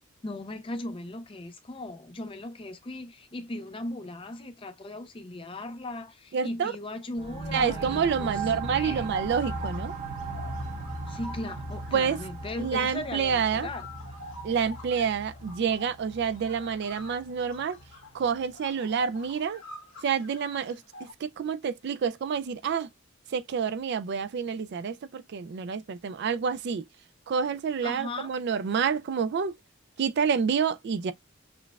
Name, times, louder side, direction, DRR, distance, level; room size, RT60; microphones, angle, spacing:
voice 1, 0.2-9.1 11.1-13.9 27.8-28.3, left 2 dB, 25° left, 0.5 m, -38 dB
voice 2, 6.3-6.7 7.5-9.9 11.9-12.2 12.6-13.7 14.4-17.8 18.1-19.6 20.0-20.8 21.2-22.9 23.3-26.8 27.3-29.5 30.0-31.1, right 6 dB, 55° right, 0.3 m, -28 dB
sound 1, 7.2-18.5, right 3 dB, 35° right, 0.9 m, -38 dB
sound 2, 9.4-21.1, left 2 dB, 70° left, 1.6 m, -48 dB
5.9 x 2.3 x 2.2 m
head